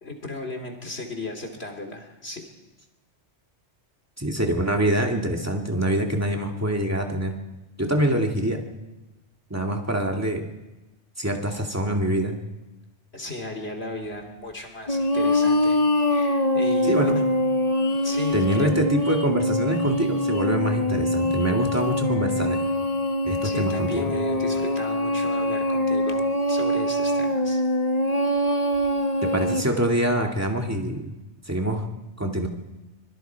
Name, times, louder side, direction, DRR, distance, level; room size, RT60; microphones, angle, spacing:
voice 1, 0.0-2.5 13.1-17.3 18.0-18.7 23.4-27.6, left 3 dB, 60° left, 3 dB, 3.2 m, -35 dB
voice 2, 4.2-7.3 7.8-8.6 9.5-10.4 11.2-12.4 16.9-17.2 18.3-22.6 23.2-24.1 29.2-31.1 31.5-31.8 32.2-32.5, right 1 dB, 15° right, 1 dB, 2.2 m, -25 dB
sound 1, 14.9-29.6, left 1 dB, 35° left, 1.3 m, -24 dB
25.0 x 22.5 x 4.6 m, 1.1 s
omnidirectional pair, 1.2 m